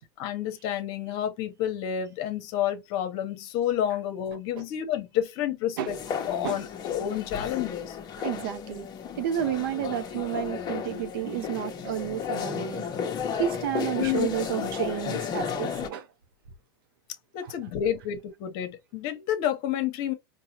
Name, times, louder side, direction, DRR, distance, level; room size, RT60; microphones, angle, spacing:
voice 1, 0.2-5.9 6.3-8.0 14.0-14.3 17.3-20.1, left 10 dB, 55° left, 1.1 m, -29 dB
sound 1, 5.9-15.9, left 7 dB, 35° left, 0.9 m, -33 dB
voice 2, 8.2-8.9 9.2-12.9 13.4-16.1 17.4-17.7, right 10 dB, 70° right, 0.7 m, -31 dB
4.6 x 2.3 x 2.9 m
hypercardioid pair, 110°, 12 cm